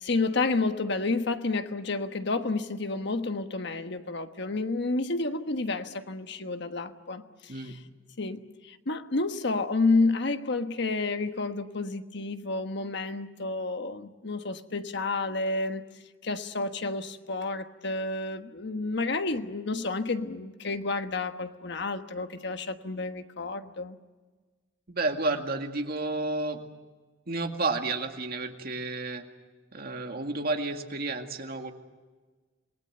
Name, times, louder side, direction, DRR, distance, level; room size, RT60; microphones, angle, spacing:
voice 1, 0.0-7.8 8.2-15.9 16.2-24.0, left 3 dB, 65° left, 1.3 m, -30 dB
voice 2, 24.9-26.6 27.3-29.3 29.7-31.7, right 3 dB, 50° right, 2.1 m, -31 dB
27.5 x 20.5 x 7.9 m
head